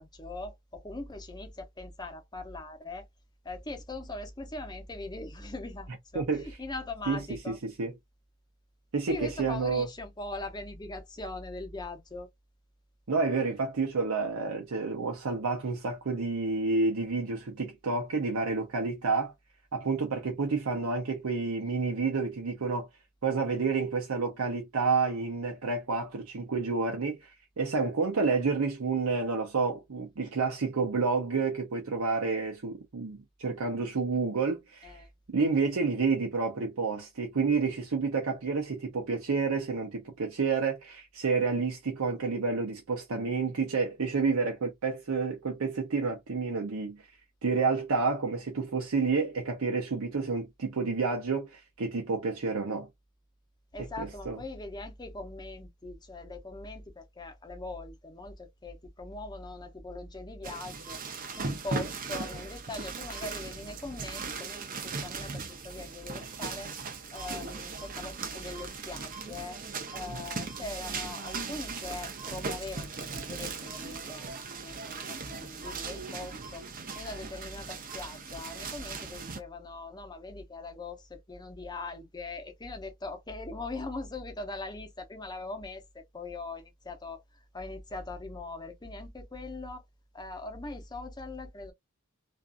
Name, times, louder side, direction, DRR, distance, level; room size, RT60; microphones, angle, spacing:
voice 1, 0.0-3.1 3.4-7.6 9.1-12.3 34.8-35.1 53.7-61.0 61.4-66.7 67.1-69.6 69.9-76.7 76.9-89.8 90.1-91.7, left 2 dB, 20° left, 0.6 m, -41 dB
voice 2, 6.1-6.5 7.1-7.9 8.9-9.9 13.1-19.3 19.7-22.9 23.2-35.0 35.3-47.0 47.4-52.9 54.0-54.4, right 4 dB, 85° right, 0.7 m, -29 dB
sound 1, 60.4-79.4, right 4 dB, 40° right, 0.6 m, -38 dB
2.5 x 2.4 x 2.4 m
head